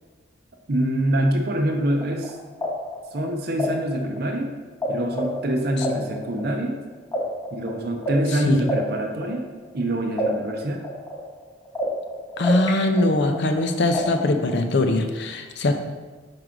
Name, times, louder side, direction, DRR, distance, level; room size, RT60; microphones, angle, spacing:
voice 1, 0.7-2.4 3.1-4.5 4.9-6.8 7.5-9.5 9.7-10.8, right 1 dB, 50° right, 2 dB, 0.6 m, -25 dB
sound 1, 1.9-4.9 5.1-9.8 10.2-12.7 13.0-14.6, equal, 15° left, 1.0 m, -30 dB
voice 2, 12.4-15.8, left 2 dB, 60° left, 6 dB, 0.5 m, -21 dB
6.0 x 4.7 x 3.8 m, 1.4 s
head